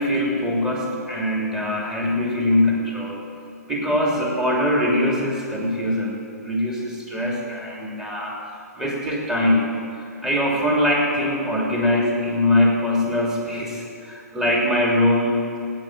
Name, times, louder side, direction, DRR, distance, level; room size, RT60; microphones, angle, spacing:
voice 1, 0.0-3.2 3.7-8.4 8.8-9.7 10.0-15.6, left 1 dB, 5° right, -3 dB, 2.8 m, -22 dB
18.0 x 9.2 x 7.6 m, 2.6 s
figure-of-eight pair, 125°, 9 cm